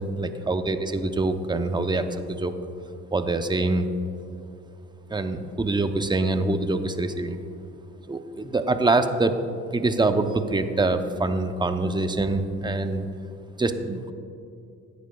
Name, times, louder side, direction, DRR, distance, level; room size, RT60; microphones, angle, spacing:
voice 1, 0.0-2.5 3.1-3.9 5.1-7.4 8.1-9.3 9.7-13.1 13.6-14.1, right 2 dB, 15° right, 8 dB, 0.6 m, -25 dB
16.0 x 10.0 x 2.3 m, 2.5 s
cardioid pair, 90°, 30 cm